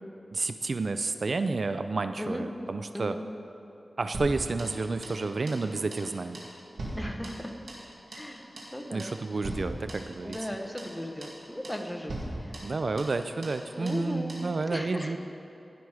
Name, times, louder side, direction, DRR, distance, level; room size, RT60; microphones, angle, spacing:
voice 1, 0.3-3.2 4.0-6.4 8.9-10.4 12.6-15.2, right 3 dB, 65° right, 9 dB, 0.4 m, -30 dB
voice 2, 2.9-3.3 7.0-7.5 8.1-9.1 10.2-12.6 13.8-14.4 14.7-15.2, equal, 10° left, 4 dB, 1.1 m, -36 dB
sound 1, 4.1-5.2 5.5-5.7 5.9-6.1 6.3-7.9 8.1-8.3 8.6-8.7 9.0-9.2 9.4-10.5 10.8-10.9 11.2-11.4 11.6-11.8 12.1-13.2 13.4-13.6 13.9-14.0 14.3-14.5, right 1 dB, 80° right, 2.1 m, -39 dB
16.5 x 6.1 x 4.9 m, 3.0 s
cardioid pair, 55°, 0 cm